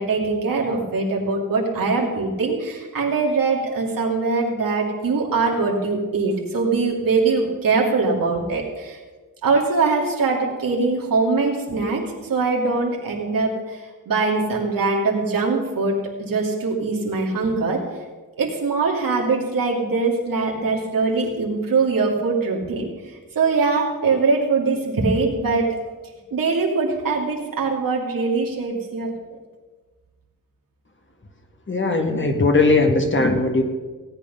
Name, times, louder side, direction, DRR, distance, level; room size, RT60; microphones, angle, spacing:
voice 1, 0.0-9.0 9.4-17.8 18.4-22.9 23.3-25.7 26.3-29.4, right 4 dB, 90° right, -2 dB, 2.7 m, -22 dB
voice 2, 31.7-33.6, left 3 dB, 35° left, 4 dB, 1.7 m, -19 dB
17.0 x 8.9 x 5.5 m, 1.4 s
wide cardioid pair, 85°, 33 cm